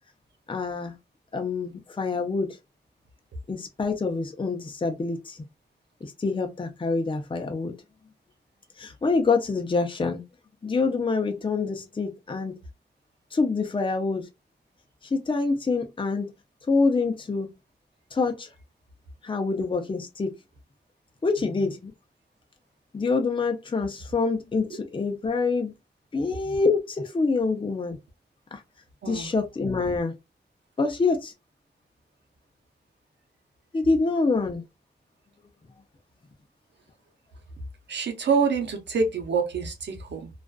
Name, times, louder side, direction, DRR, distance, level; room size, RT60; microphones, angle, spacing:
voice 1, 0.5-1.0 1.3-2.6 3.5-5.4 6.0-7.7 8.8-10.2 10.6-12.6 13.3-14.3 15.1-16.3 16.7-17.5 18.1-18.5 19.2-20.3 21.2-21.9 22.9-25.7 26.1-28.0 28.5-28.6 29.1-30.1 30.8-31.3 33.7-34.6, left 4 dB, 30° left, 0.5 m, -26 dB
voice 2, 37.9-40.3, right 5 dB, 85° right, 0.7 m, -26 dB
2.4 x 2.3 x 2.3 m
wide cardioid pair, 75°, 18 cm